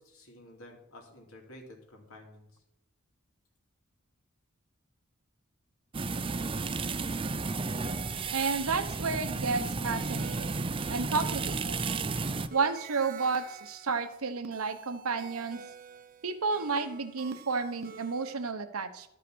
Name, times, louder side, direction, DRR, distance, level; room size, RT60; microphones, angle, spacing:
voice 1, 0.0-2.5, left 1 dB, 75° left, 1 dB, 2.7 m, -51 dB
sound 1, 5.9-12.5, right 3 dB, 25° right, 0.5 m, -33 dB
sound 2, 7.8-18.5, right 5 dB, 40° right, 0.9 m, -49 dB
voice 2, 8.3-11.9 12.5-15.6 16.2-19.1, right 4 dB, 85° right, 9 dB, 1.1 m, -32 dB
12.5 x 5.7 x 6.2 m, 0.76 s
head